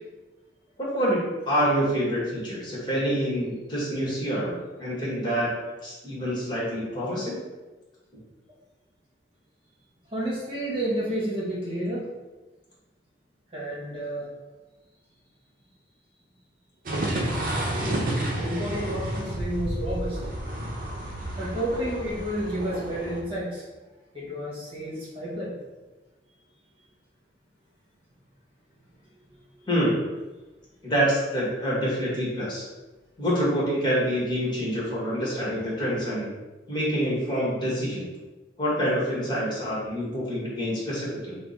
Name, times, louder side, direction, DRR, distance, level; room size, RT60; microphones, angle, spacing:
voice 1, 0.8-5.5 5.8-7.4 29.7-30.0 30.8-32.6 33.2-36.3 36.7-38.1 38.6-41.4, equal, 25° left, -6 dB, 1.3 m, -26 dB
voice 2, 10.1-12.1 13.5-14.3 18.3-20.2 21.4-23.6 24.1-25.5, right 1 dB, 30° right, -6 dB, 1.1 m, -30 dB
sound 1, 16.8-23.2, right 1 dB, 50° right, 0.7 m, -30 dB
5.6 x 2.1 x 4.1 m, 1.2 s
head